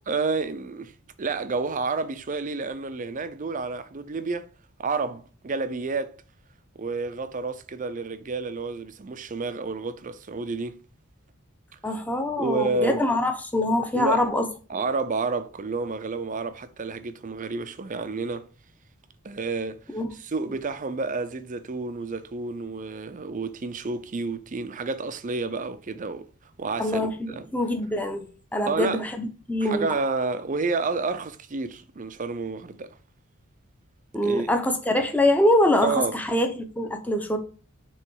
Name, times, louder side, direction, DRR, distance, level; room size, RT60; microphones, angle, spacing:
voice 1, 0.1-0.9 1.2-4.5 4.8-6.1 6.8-10.8 12.4-13.0 13.9-14.3 14.7-18.5 19.2-19.8 20.2-26.3 26.6-27.5 28.7-29.0 29.6-32.9 34.2-34.5 35.8-36.2, right 3 dB, 35° right, 0.5 m, -30 dB
voice 2, 11.8-14.5 19.9-20.1 26.8-29.9 34.1-37.4, left 1 dB, 5° left, 0.8 m, -24 dB
6.6 x 3.1 x 4.6 m
head